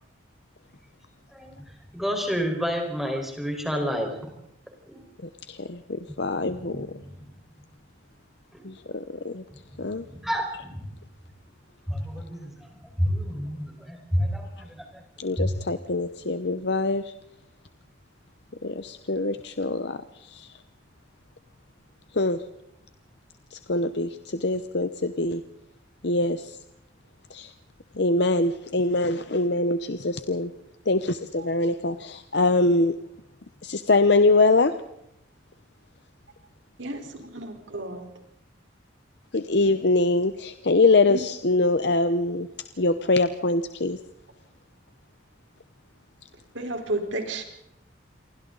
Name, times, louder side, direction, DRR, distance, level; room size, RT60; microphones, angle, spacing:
voice 1, 1.3-1.6 1.9-4.1 4.9-5.0 6.4-7.3 8.5-8.7 9.7-10.9 11.9-15.0 15.4-15.5, equal, ahead, 4.9 m, -30 dB
voice 2, 5.5-6.9 8.6-9.4 9.8-10.0 15.2-17.0 18.6-20.5 22.1-22.4 23.5-25.4 26.0-26.6 27.3-27.5 27.9-30.5 30.9-33.0 33.6-34.7 39.3-42.5 42.8-44.0, left 2 dB, 60° left, 0.9 m, -24 dB
voice 3, 36.8-38.1 41.1-41.2 46.5-47.4, right 2 dB, 80° right, 4.4 m, -32 dB
28.5 x 24.0 x 4.1 m
head